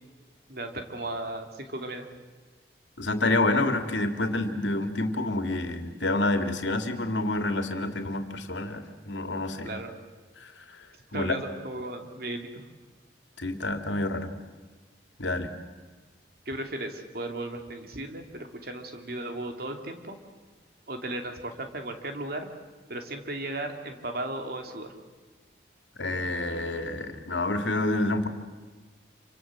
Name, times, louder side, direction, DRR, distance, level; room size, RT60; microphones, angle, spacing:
voice 1, 0.5-2.1 9.6-9.9 11.1-12.7 16.5-20.2 20.9-22.5 22.9-24.9, right 1 dB, 55° right, 5 dB, 3.0 m, -36 dB
voice 2, 3.0-9.8 10.4-10.8 11.1-11.3 13.4-14.3 15.2-15.5 26.0-28.3, left 2 dB, 85° left, 7 dB, 2.6 m, -28 dB
28.0 x 25.5 x 7.7 m, 1.3 s
head